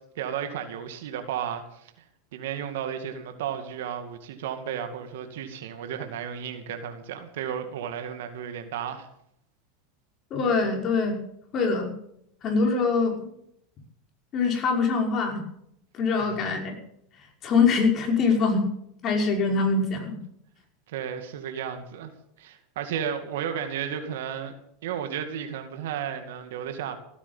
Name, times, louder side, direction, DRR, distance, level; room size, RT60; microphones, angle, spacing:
voice 1, 0.2-1.9 2.3-9.1 16.1-16.3 20.9-22.1 22.4-24.5 24.8-27.0, right 8 dB, 75° right, 7 dB, 2.3 m, -33 dB
voice 2, 10.3-11.2 11.5-11.9 12.4-13.3 14.3-15.4 15.9-16.7 17.4-18.7 19.0-20.2, left 4 dB, 40° left, 2 dB, 5.5 m, -23 dB
17.0 x 10.0 x 7.3 m, 0.73 s
hypercardioid pair, 105°, 0 cm